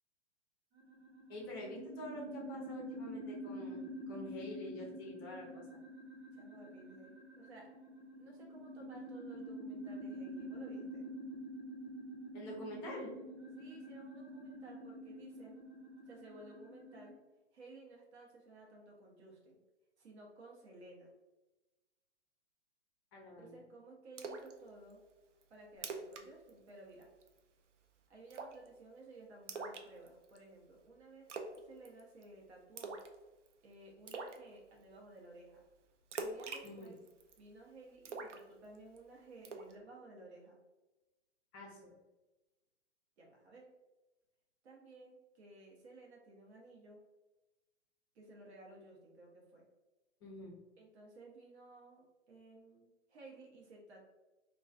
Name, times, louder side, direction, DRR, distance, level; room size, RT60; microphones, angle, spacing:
sound 1, 0.7-17.1, equal, 40° right, 0.8 m, -47 dB
voice 1, 1.3-5.7 12.3-13.1 23.1-23.6 36.6-36.9 41.5-41.9 50.2-50.5, left 1 dB, 20° left, -3 dB, 0.4 m, -47 dB
voice 2, 6.3-7.7 8.2-11.0 13.6-15.6 16.1-17.2 17.5-19.5 20.0-21.1 23.4-25.0 25.5-27.1 28.1-31.3 31.6-33.0 33.6-35.6 36.2-37.0 37.4-40.6 43.2-43.7 44.6-47.0 48.1-49.7 50.8-54.0, right 2 dB, 65° right, -1 dB, 0.8 m, -56 dB
Splash splatter, 24.2-24.5 24.9-25.0 25.4-25.5 25.7-26.2 26.5-26.7 27.0-27.4 28.3-28.7 29.5-30.4 31.3-31.6 31.8-32.2 32.8-33.1 33.5-33.6 34.1-34.4 36.1-37.4 38.0-39.0 39.4-39.7, right 4 dB, 80° right, 0.5 m, -43 dB
2.4 x 2.2 x 2.4 m, 1.1 s
figure-of-eight pair, 125°, 35 cm